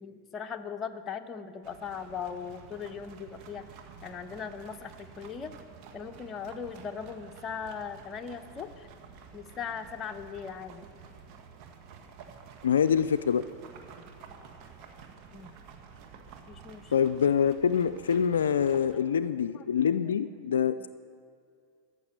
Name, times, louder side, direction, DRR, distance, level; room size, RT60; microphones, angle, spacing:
voice 1, 0.0-3.7 4.0-5.5 5.9-8.9 9.3-10.9 15.3-15.5 16.5-16.9 18.9-19.3 19.5-20.0 20.4-20.5, left 6 dB, 30° left, 6 dB, 0.9 m, -39 dB
sound 1, 1.6-18.9, right 6 dB, 50° right, 1.7 m, -50 dB
voice 2, 12.6-13.4 16.9-20.9, left 7 dB, 85° left, 12 dB, 0.3 m, -25 dB
14.0 x 6.7 x 9.9 m, 2.3 s
hypercardioid pair, 100°, 0 cm